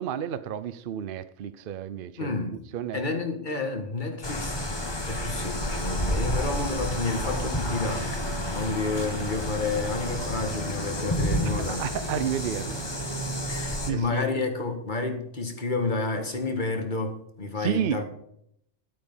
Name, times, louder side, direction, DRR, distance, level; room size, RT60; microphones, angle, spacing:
voice 1, 0.0-2.3 2.7-3.0 11.4-12.8 13.9-14.3 17.6-18.0, right 9 dB, 60° right, 0.8 m, -31 dB
voice 2, 2.2-2.6 2.9-4.7 5.1-11.9 13.5-18.0, left 3 dB, 45° left, 1.9 m, -30 dB
sound 1, 4.2-13.9, equal, 25° left, 1.3 m, -30 dB
12.0 x 8.6 x 5.6 m
omnidirectional pair, 1.1 m